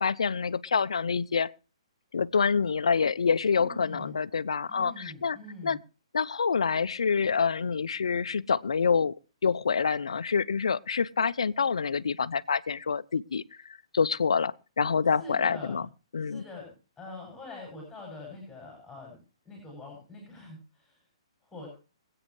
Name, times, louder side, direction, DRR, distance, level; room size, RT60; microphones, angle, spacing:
voice 1, 0.0-1.5 2.1-5.4 5.6-5.8 6.1-9.1 9.4-13.4 13.9-15.8 16.1-16.4, left 5 dB, 80° left, 0.6 m, -26 dB
voice 2, 3.6-4.2 4.7-5.8 15.2-15.8 16.3-19.2 19.4-21.0 21.4-21.7, left 2 dB, 5° left, 7.3 m, -44 dB
26.0 x 8.7 x 3.2 m
hypercardioid pair, 135°, 3 cm